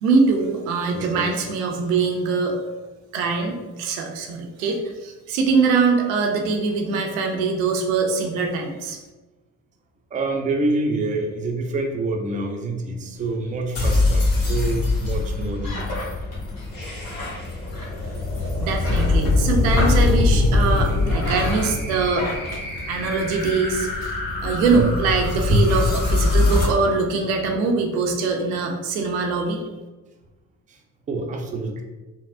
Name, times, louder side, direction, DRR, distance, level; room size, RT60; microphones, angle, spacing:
voice 1, 0.0-2.6 3.1-9.0 18.6-22.3 22.9-29.6, right 4 dB, 85° right, 2 dB, 0.5 m, -23 dB
voice 2, 0.9-1.3 10.1-16.1 24.7-24.9 25.3-25.7 30.7-30.8 31.1-31.8, right 2 dB, 20° right, 3 dB, 0.4 m, -26 dB
sound 1, 13.2-23.4, left 2 dB, 85° left, 1.0 m, -35 dB
sound 2, 13.8-26.7, left 3 dB, 50° left, 1.2 m, -23 dB
3.4 x 2.0 x 2.4 m, 1.2 s
hypercardioid pair, 60°, 41 cm